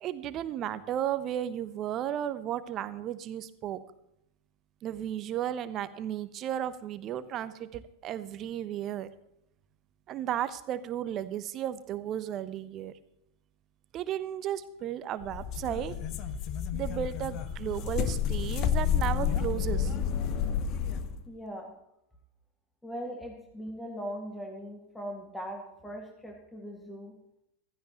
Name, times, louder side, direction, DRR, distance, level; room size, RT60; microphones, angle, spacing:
voice 1, 0.0-3.8 4.8-9.1 10.1-12.9 13.9-15.9 16.7-19.9, right 11 dB, 35° right, 14 dB, 0.9 m, -34 dB
sound 1, 15.2-21.2, left 8 dB, 35° left, 0.9 m, -30 dB
voice 2, 21.3-21.7 22.8-27.1, equal, 5° left, 1 dB, 2.0 m, -40 dB
15.5 x 13.5 x 3.0 m, 0.81 s
figure-of-eight pair, 90°, 0 cm